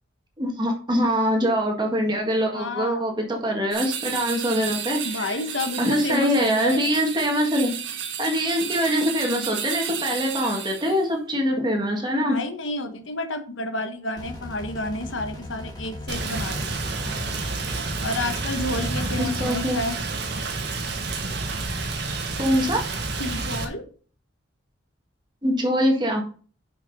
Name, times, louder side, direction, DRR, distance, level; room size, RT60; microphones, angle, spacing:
voice 1, 0.4-5.3 5.8-12.4 19.2-19.8 22.4-22.9 25.4-26.2, equal, 20° right, 1.7 m, -24 dB
voice 2, 2.5-3.1 5.0-6.9 12.2-16.7 17.0-17.2 18.0-20.0 23.2-23.9, left 2 dB, 75° left, 1.2 m, -30 dB
sound 1, 3.7-11.0, right 8 dB, 75° right, 1.4 m, -33 dB
sound 2, 14.2-19.4, left 1 dB, 20° left, 2.7 m, -38 dB
Rain, 16.1-23.6, right 3 dB, 55° right, 1.5 m, -29 dB
6.5 x 5.8 x 5.2 m
head